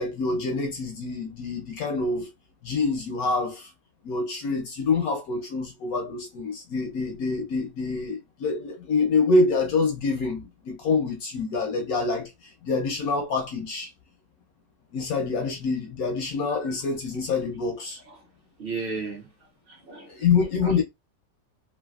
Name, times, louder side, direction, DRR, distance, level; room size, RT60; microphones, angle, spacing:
voice 1, 0.0-2.3 2.6-3.7 4.0-13.9 14.9-18.0 20.1-20.8, left 4 dB, 65° left, 0.9 m, -26 dB
voice 2, 18.6-19.3 19.7-20.2 20.6-20.8, right 4 dB, 50° right, 0.7 m, -35 dB
3.2 x 2.4 x 2.3 m
omnidirectional pair, 2.0 m